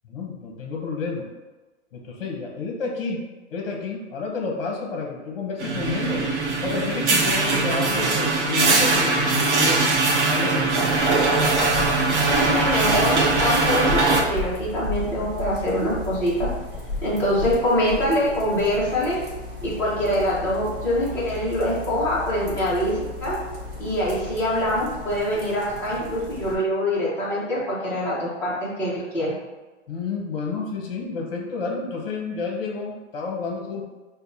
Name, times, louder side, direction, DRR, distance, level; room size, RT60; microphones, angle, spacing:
voice 1, 0.0-1.3 1.9-3.2 3.5-6.2 6.6-10.0 10.3-11.0 29.9-33.8, left 4 dB, 50° left, 0 dB, 1.1 m, -30 dB
sound 1, 5.6-14.2, right 3 dB, 65° right, 0.9 m, -21 dB
sound 2, 11.0-26.5, left 3 dB, 30° right, 1.2 m, -35 dB
voice 2, 12.2-16.5 17.0-19.2 19.6-23.4 23.8-29.3, equal, 5° left, -10 dB, 0.8 m, -24 dB
6.7 x 2.3 x 2.7 m, 1.2 s
hypercardioid pair, 160°, 38 cm